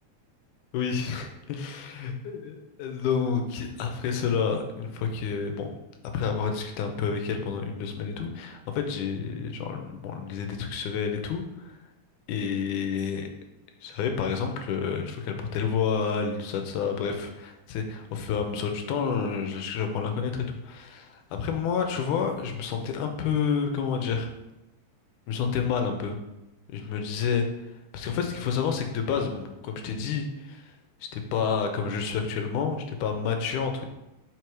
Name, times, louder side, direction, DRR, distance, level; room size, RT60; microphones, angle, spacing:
voice 1, 0.7-5.7 6.1-11.7 12.3-13.3 13.8-24.3 25.3-26.2 26.7-27.5 27.9-30.6 31.1-33.9, left 6 dB, 80° left, 5 dB, 2.2 m, -29 dB
5.4 x 4.6 x 4.7 m, 0.93 s
omnidirectional pair, 3.5 m